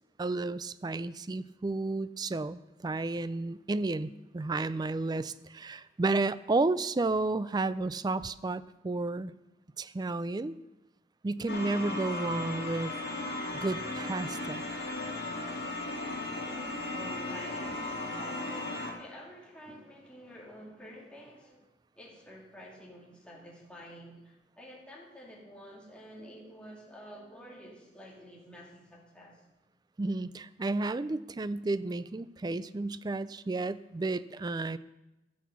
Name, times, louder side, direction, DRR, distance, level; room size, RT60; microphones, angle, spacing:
voice 1, 0.2-9.3 9.8-10.6 11.2-13.0 13.6-14.6 30.0-34.8, right 3 dB, 25° right, 16 dB, 0.3 m, -32 dB
sound 1, 11.5-18.9, left 2 dB, 70° left, 2.3 m, -36 dB
voice 2, 16.4-21.6 21.9-29.4, equal, 5° left, -4 dB, 2.6 m, -49 dB
14.5 x 6.5 x 5.8 m, 0.99 s
head